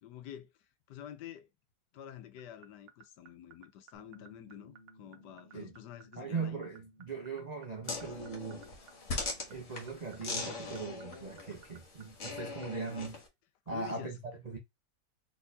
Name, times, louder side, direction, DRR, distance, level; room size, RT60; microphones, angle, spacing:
voice 1, 0.0-1.5 1.9-6.6 13.7-14.2, left 11 dB, 75° left, 1.2 m, -48 dB
sound 1, 2.4-12.9, right 10 dB, 80° right, 1.4 m, -55 dB
Bass guitar, 3.9-10.2, equal, 30° left, 1.1 m, -62 dB
voice 2, 6.2-8.6 9.5-13.2 13.7-14.6, right 4 dB, 55° right, 0.4 m, -40 dB
sound 2, 7.8-13.3, left 3 dB, 50° left, 1.5 m, -41 dB
4.2 x 3.6 x 2.7 m
omnidirectional pair, 1.9 m